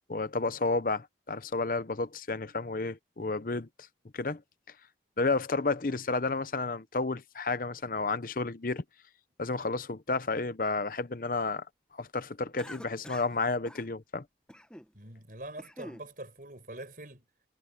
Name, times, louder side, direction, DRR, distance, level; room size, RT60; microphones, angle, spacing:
voice 1, 0.1-3.7 4.1-4.4 5.2-8.8 9.4-11.6 12.0-14.2, left 3 dB, 50° left, 0.8 m, -31 dB
Cough, 12.6-13.4 13.6-13.9 14.5-14.9 15.4-16.1, equal, 5° left, 1.1 m, -47 dB
voice 2, 14.9-17.2, right 1 dB, 50° right, 6.4 m, -44 dB
head